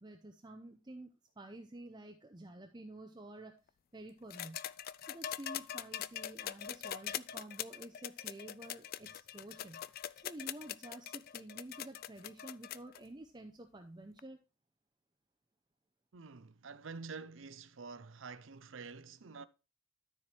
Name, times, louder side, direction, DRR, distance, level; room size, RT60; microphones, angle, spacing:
voice 1, 0.0-3.6 3.9-4.6 5.1-9.9 10.2-14.4, right 1 dB, 20° right, 0.7 m, -50 dB
sound 1, 4.3-13.0 14.2-14.3, left 11 dB, 45° left, 0.3 m, -42 dB
voice 2, 16.1-19.5, right 4 dB, 65° right, 0.6 m, -48 dB
13.0 x 4.6 x 3.3 m
head